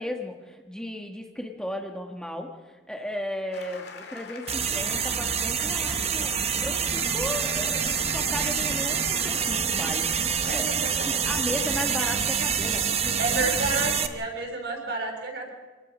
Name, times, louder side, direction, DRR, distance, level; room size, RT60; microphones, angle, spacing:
voice 1, 0.0-10.7 11.1-13.5, left 1 dB, 5° left, 2 dB, 1.5 m, -35 dB
sound 1, 3.5-13.9, left 5 dB, 60° left, 2.5 m, -44 dB
sound 2, 4.5-14.1, right 7 dB, 35° right, 1.2 m, -26 dB
voice 2, 13.2-15.5, right 3 dB, 60° right, 2 dB, 6.6 m, -30 dB
27.0 x 18.5 x 6.2 m, 1.3 s
head